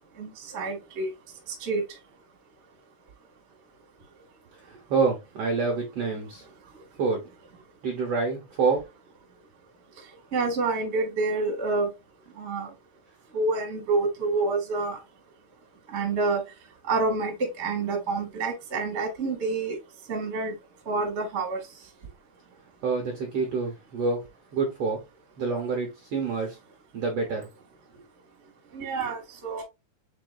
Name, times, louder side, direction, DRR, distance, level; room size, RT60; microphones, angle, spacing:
voice 1, 0.2-1.1 1.6-1.8 10.3-11.9 12.4-12.7 13.3-15.0 15.9-16.4 16.9-19.7 20.1-20.5 20.9-21.6 28.7-29.6, right 3 dB, 40° right, 0.9 m, -27 dB
voice 2, 4.6-6.4 7.0-7.2 7.8-8.9 22.8-24.3 24.5-25.0 25.4-26.6 26.9-27.5, right 4 dB, 85° right, 1.3 m, -27 dB
6.0 x 3.8 x 2.4 m
omnidirectional pair, 4.5 m